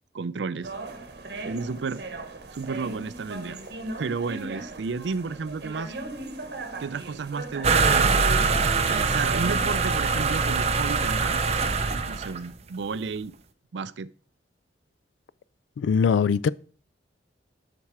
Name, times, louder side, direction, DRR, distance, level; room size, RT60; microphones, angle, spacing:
voice 1, 0.1-0.7 1.4-2.0 2.5-3.6 4.0-5.9 6.8-8.4 8.9-11.5 12.1-13.3 13.7-14.1, right 4 dB, 80° right, 0.5 m, -32 dB
sound 1, 0.6-9.8, right 2 dB, 60° right, 1.2 m, -38 dB
sound 2, 7.6-12.5, right 4 dB, 35° right, 0.6 m, -23 dB
voice 2, 15.8-16.5, left 6 dB, 85° left, 0.3 m, -21 dB
7.3 x 6.0 x 4.7 m
head